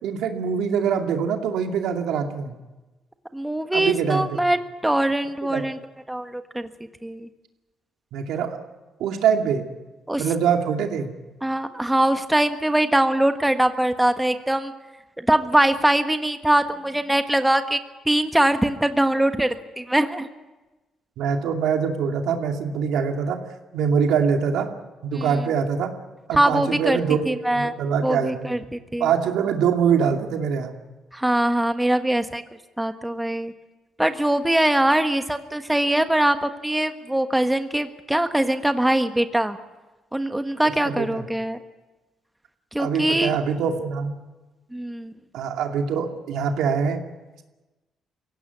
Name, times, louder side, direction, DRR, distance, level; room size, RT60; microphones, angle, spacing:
voice 1, 0.0-2.6 3.7-4.4 5.4-5.7 8.1-8.6 9.0-9.6 10.2-11.1 21.2-23.4 23.7-24.7 25.0-25.9 26.3-27.2 27.5-28.6 29.0-30.7 40.8-41.3 42.8-44.2 45.3-47.0, right 7 dB, 85° right, 4 dB, 2.4 m, -24 dB
voice 2, 3.3-4.6 4.8-5.8 6.1-6.7 7.0-7.3 10.1-10.2 11.4-14.7 15.3-17.8 18.1-19.5 19.8-20.3 25.1-25.3 26.3-27.0 27.2-27.7 28.0-29.1 31.1-32.4 32.8-33.5 34.0-39.6 40.1-41.6 42.7-43.4 44.7-45.1, right 1 dB, 10° right, 8 dB, 1.5 m, -22 dB
23.5 x 17.0 x 9.6 m, 1.2 s
cardioid pair, 90°, 0 cm